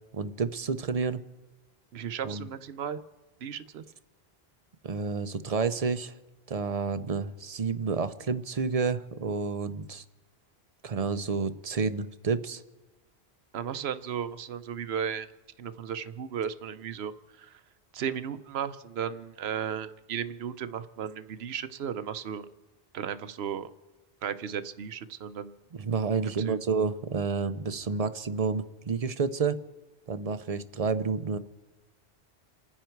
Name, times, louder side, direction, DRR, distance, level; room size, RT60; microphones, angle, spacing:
voice 1, 0.1-1.2 2.2-2.5 4.8-6.1 6.5-10.0 10.8-12.6 25.7-29.6 30.1-31.4, right 5 dB, 40° right, 12 dB, 0.6 m, -30 dB
voice 2, 1.9-3.0 3.4-3.8 13.5-15.3 15.6-17.1 17.4-17.6 17.9-22.5 22.9-23.7 24.2-25.5 26.2-26.6, right 8 dB, 75° right, 12 dB, 1.0 m, -35 dB
29.0 x 10.0 x 4.6 m, 1.2 s
omnidirectional pair, 1.1 m